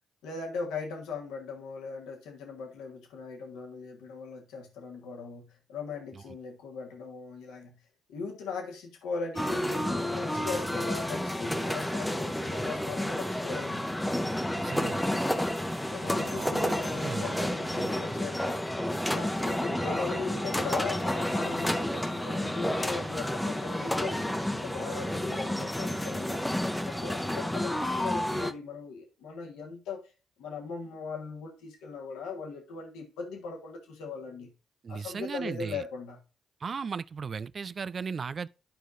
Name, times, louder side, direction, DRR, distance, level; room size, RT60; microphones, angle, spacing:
voice 1, 0.2-7.8 8.1-13.9 15.9-18.6 19.0-26.4 26.8-30.0 30.4-34.5 34.9-36.2, left 4 dB, 85° left, 1.4 m, -39 dB
sound 1, 9.4-28.5, left 1 dB, 10° left, 1.0 m, -30 dB
sound 2, 14.5-24.0, left 2 dB, 45° left, 1.6 m, -47 dB
voice 2, 14.6-15.0 16.1-17.3 34.8-35.8 36.6-38.5, right 5 dB, 50° right, 0.3 m, -36 dB
12.0 x 4.6 x 2.6 m
supercardioid pair, 50°, 0 cm